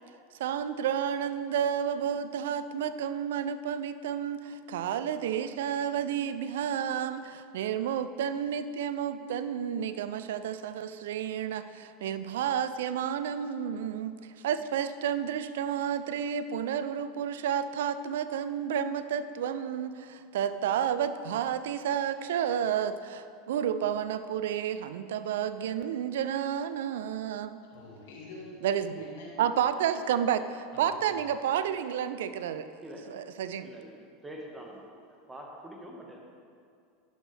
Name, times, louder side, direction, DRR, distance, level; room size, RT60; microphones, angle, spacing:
voice 1, 0.4-14.1 14.4-27.6 28.6-29.1 29.4-32.7 33.1-33.7, right 9 dB, 80° right, 12 dB, 0.3 m, -31 dB
voice 2, 27.7-29.5 30.9-31.2, left 2 dB, 75° left, -3 dB, 2.0 m, -46 dB
voice 3, 32.8-33.3 33.6-33.9 34.2-34.9 35.3-36.2, right 1 dB, 10° right, -1 dB, 1.6 m, -44 dB
11.5 x 6.2 x 3.4 m, 2.4 s
hypercardioid pair, 95°, 0 cm